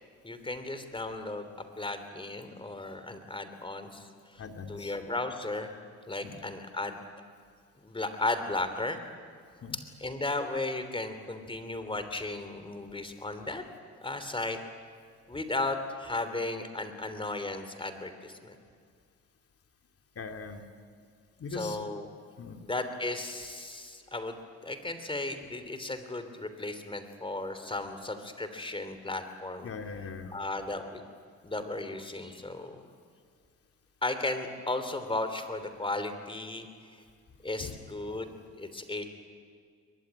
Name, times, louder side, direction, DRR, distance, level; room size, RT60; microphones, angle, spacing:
voice 1, 0.2-1.5 1.8-4.4 4.7-5.7 6.1-7.0 7.8-9.0 10.0-13.6 14.0-14.6 15.3-18.6 21.5-22.1 22.6-24.4 24.6-29.7 30.3-31.0 31.4-32.8 34.0-36.7 37.4-39.1, left 2 dB, 15° left, 9 dB, 3.1 m, -35 dB
voice 2, 4.4-5.0 6.2-6.4 9.6-9.8 20.2-20.6 21.4-21.8 22.4-22.6 29.6-30.3 37.6-37.8, left 5 dB, 50° left, 5 dB, 2.4 m, -40 dB
22.5 x 21.5 x 9.7 m, 2.1 s
cardioid pair, 90°, 30 cm